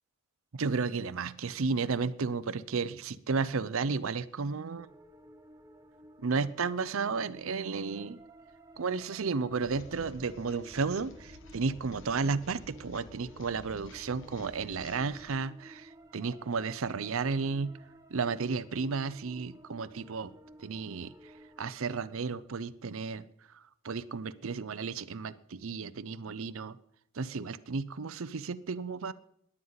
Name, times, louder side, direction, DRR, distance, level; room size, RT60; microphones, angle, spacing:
voice 1, 0.5-4.9 6.2-8.2 8.8-17.7 18.1-20.3 20.6-21.1 21.6-23.2 23.5-26.7 27.1-29.1, right 4 dB, 70° right, 16 dB, 0.6 m, -33 dB
sound 1, 4.8-21.8, right 1 dB, 15° right, 0.9 m, -54 dB
sound 2, 9.6-15.4, left 2 dB, 55° left, 1.3 m, -52 dB
17.0 x 11.0 x 4.0 m, 0.71 s
head